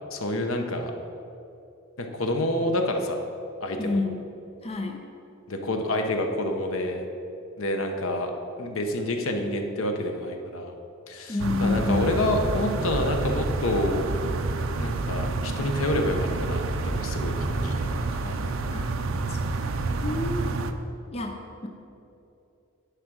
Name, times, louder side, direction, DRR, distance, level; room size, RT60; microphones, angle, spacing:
voice 1, 0.1-0.9 2.0-3.2 3.6-4.0 5.5-7.0 7.6-8.3 8.6-10.7 11.1-14.0 14.8-18.5, left 1 dB, 75° left, 4 dB, 0.9 m, -28 dB
voice 2, 3.8-4.2 4.6-5.0 11.3-12.1 18.7-18.8 19.3-19.4 20.0-20.5 21.1-21.4, left 3 dB, 30° left, 3 dB, 0.6 m, -28 dB
sound 1, 11.4-20.7, right 3 dB, 70° right, 0.5 m, -28 dB
9.9 x 5.0 x 6.1 m, 2.8 s
head